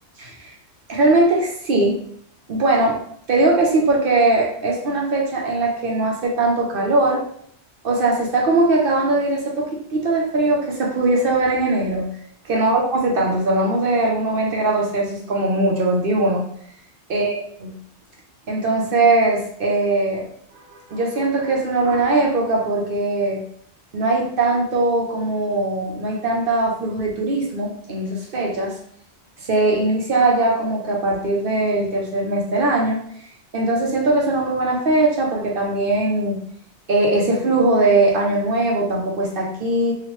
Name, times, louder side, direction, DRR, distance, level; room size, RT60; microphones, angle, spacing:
voice 1, 0.2-0.5 0.9-2.0 2.5-3.0 3.3-7.2 7.8-12.1 12.4-16.4 17.1-17.7 18.5-20.3 20.5-23.4 23.9-28.8 29.4-33.0 33.5-36.4 36.9-39.9, right 2 dB, 60° right, -1 dB, 0.8 m, -20 dB
2.8 x 2.4 x 3.0 m, 0.64 s
omnidirectional pair, 1.1 m